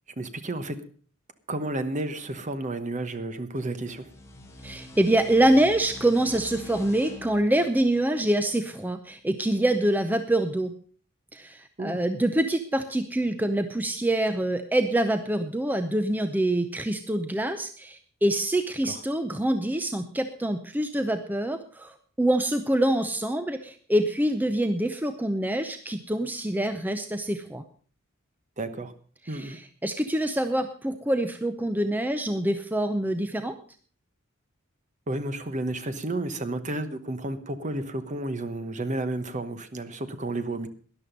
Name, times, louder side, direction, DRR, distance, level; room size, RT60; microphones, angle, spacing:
voice 1, 0.2-0.8 1.5-4.1 11.8-12.0 18.8-19.0 28.6-28.9 29.3-29.6 35.1-40.7, right 2 dB, 35° right, 10 dB, 1.1 m, -31 dB
sound 1, 3.7-9.0, left 1 dB, 15° left, 2.2 m, -45 dB
voice 2, 4.6-10.7 11.3-27.6 29.3-33.5, right 1 dB, 10° right, 8 dB, 0.6 m, -25 dB
13.0 x 11.0 x 5.3 m, 0.44 s
head